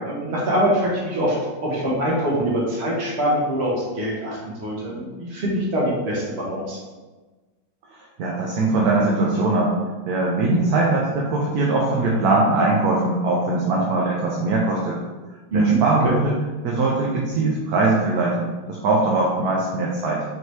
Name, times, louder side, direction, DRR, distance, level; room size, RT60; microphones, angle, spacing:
voice 1, 0.0-1.3 1.6-6.8 15.5-15.8, right 1 dB, 40° right, -4 dB, 1.1 m, -23 dB
voice 2, 7.9-9.7 10.1-15.0 15.5-16.4 16.6-20.2, right 2 dB, 70° right, -3 dB, 0.9 m, -21 dB
4.4 x 2.8 x 3.2 m, 1.3 s
omnidirectional pair, 2.1 m